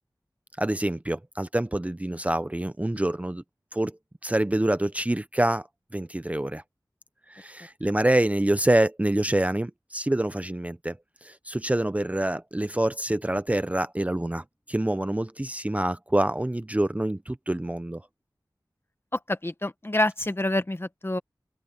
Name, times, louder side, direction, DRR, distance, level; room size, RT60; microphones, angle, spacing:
voice 1, 0.6-3.4 3.7-4.0 4.2-5.7 5.9-6.6 7.3-18.0, right 1 dB, 20° right, 0.6 m, -26 dB
voice 2, 19.1-21.2, left 1 dB, 30° left, 1.5 m, -27 dB
wide cardioid pair, 55°, 8 cm